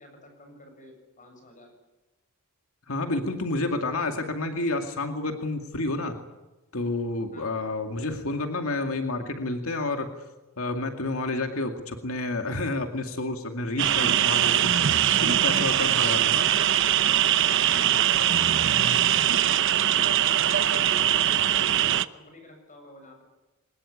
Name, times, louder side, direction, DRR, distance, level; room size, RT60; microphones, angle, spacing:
voice 1, 0.0-1.7 7.3-7.6 16.0-16.7 17.4-23.2, left 1 dB, 35° left, 5 dB, 7.5 m, -49 dB
voice 2, 2.9-6.2 6.7-10.1 10.6-14.7 15.2-16.4, left 2 dB, 75° left, 5 dB, 2.3 m, -29 dB
sound 1, 13.8-22.1, right 11 dB, 60° right, 0.8 m, -22 dB
23.0 x 20.5 x 9.9 m, 1.1 s
head